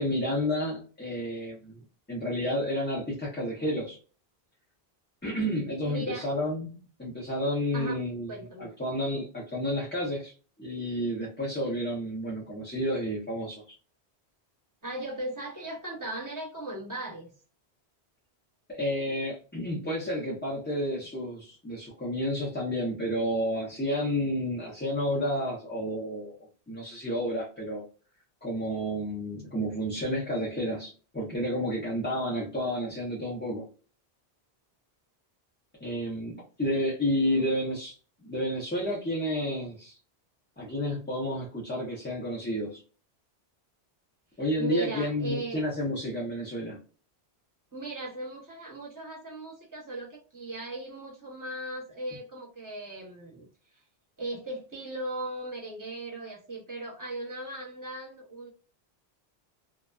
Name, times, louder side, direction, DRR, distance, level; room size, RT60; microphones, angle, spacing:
voice 1, 0.0-1.8 2.1-4.0 5.2-8.3 8.6-10.3 10.6-13.8 18.7-27.8 28.4-33.7 35.8-37.9 38.2-40.0 40.6-42.8 44.4-46.8, equal, 15° left, 0.5 m, -31 dB
voice 2, 5.8-6.3 7.7-8.0 8.3-8.7 14.8-17.3 37.2-37.7 44.6-45.6 47.7-53.8 54.2-58.5, right 2 dB, 20° right, 0.9 m, -37 dB
2.4 x 2.2 x 2.2 m
omnidirectional pair, 1.1 m